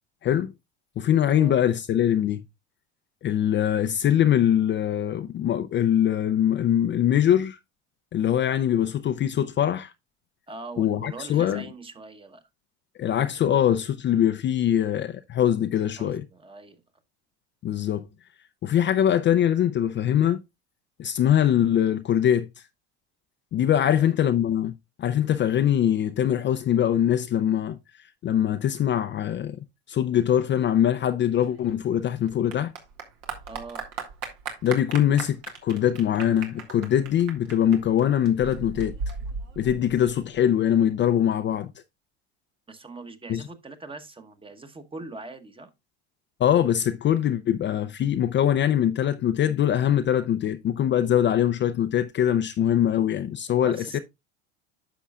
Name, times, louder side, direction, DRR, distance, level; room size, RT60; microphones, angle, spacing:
voice 1, 1.0-2.4 3.2-7.6 8.1-9.9 10.8-11.6 13.0-16.2 17.6-18.1 18.6-20.4 21.0-22.5 23.5-24.7 25.0-27.8 28.2-32.7 34.6-39.0 39.6-41.7 43.3-43.4 46.4-54.0, left 10 dB, 35° left, 0.5 m, -23 dB
voice 2, 10.5-12.4 16.0-16.8 23.8-24.1 33.5-33.8 42.7-45.7 53.6-54.0, right 3 dB, 15° right, 1.0 m, -42 dB
Clapping / Applause, 31.4-40.4, right 5 dB, 70° right, 1.9 m, -37 dB
10.0 x 6.2 x 2.3 m
supercardioid pair, 90°, 34 cm